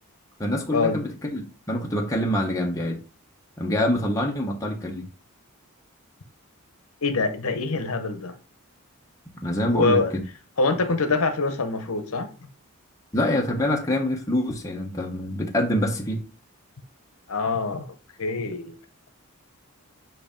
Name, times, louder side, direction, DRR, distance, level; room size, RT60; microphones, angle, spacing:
voice 1, 0.4-3.0 3.6-5.1 9.4-10.2 13.1-16.2, left 1 dB, 15° left, 0.9 m, -25 dB
voice 2, 7.0-8.3 9.7-10.1 10.6-12.3 17.3-17.9 18.2-18.7, left 3 dB, 75° left, 0.9 m, -24 dB
7.7 x 2.7 x 5.1 m
head